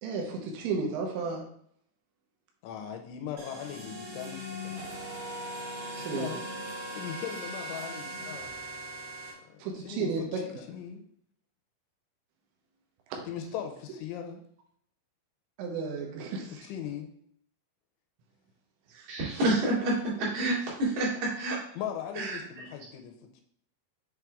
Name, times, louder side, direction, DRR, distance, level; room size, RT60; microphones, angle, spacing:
voice 1, 0.0-1.5 5.9-6.4 9.6-10.4 13.1-13.2 15.6-16.7 18.9-19.1, right 4 dB, 80° right, 1 dB, 3.1 m, -33 dB
voice 2, 2.6-4.7 5.9-6.4 7.0-8.5 9.4-11.0 13.3-14.4 16.6-17.1 21.7-23.4, left 9 dB, 80° left, 4 dB, 2.9 m, -39 dB
sound 1, 3.4-9.3, right 1 dB, 40° right, 2.3 m, -39 dB
voice 3, 19.1-21.6 22.2-22.4, right 2 dB, 60° right, -7 dB, 4.0 m, -28 dB
8.5 x 3.2 x 3.5 m, 0.66 s
omnidirectional pair, 5.5 m